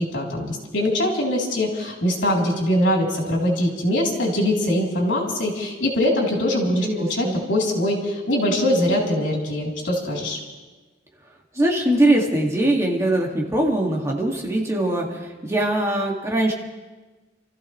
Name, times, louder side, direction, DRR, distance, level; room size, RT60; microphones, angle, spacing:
voice 1, 0.0-10.4, left 1 dB, 80° left, -2 dB, 3.6 m, -22 dB
voice 2, 6.8-7.3 11.5-16.5, right 1 dB, 15° right, -1 dB, 2.2 m, -21 dB
29.0 x 14.5 x 3.3 m, 1.2 s
head